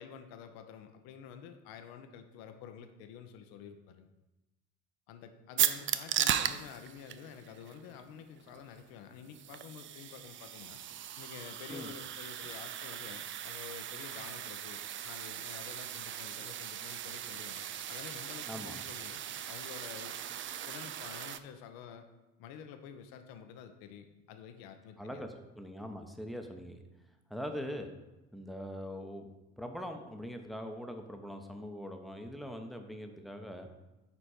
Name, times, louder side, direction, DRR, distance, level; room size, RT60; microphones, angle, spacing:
voice 1, 0.0-4.1 5.1-10.8 11.2-20.2 20.5-22.1 22.4-25.2, left 8 dB, 60° left, 7 dB, 0.9 m, -49 dB
sound 1, 5.6-21.4, right 10 dB, 30° right, 0.4 m, -38 dB
voice 2, 25.0-26.8 27.3-27.9 28.3-29.3 29.6-33.7, equal, ahead, 5 dB, 1.0 m, -42 dB
9.9 x 4.4 x 4.3 m, 1.0 s
figure-of-eight pair, 60°, 41 cm